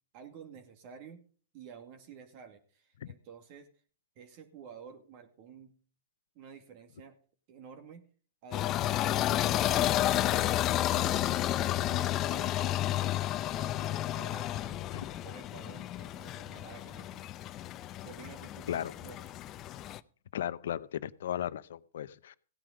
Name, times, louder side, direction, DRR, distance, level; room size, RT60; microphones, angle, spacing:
voice 1, 0.1-1.2 1.5-3.7 4.2-5.7 6.3-7.2 7.5-8.0 8.4-14.9 15.2-17.3 18.0-19.3, right 7 dB, 50° right, 6 dB, 2.1 m, -51 dB
sound 1, 8.5-20.0, left 13 dB, 35° left, 0.7 m, -31 dB
voice 2, 20.3-22.4, left 10 dB, 75° left, 16 dB, 0.7 m, -36 dB
16.0 x 9.0 x 5.1 m, 0.41 s
hypercardioid pair, 115°, 0 cm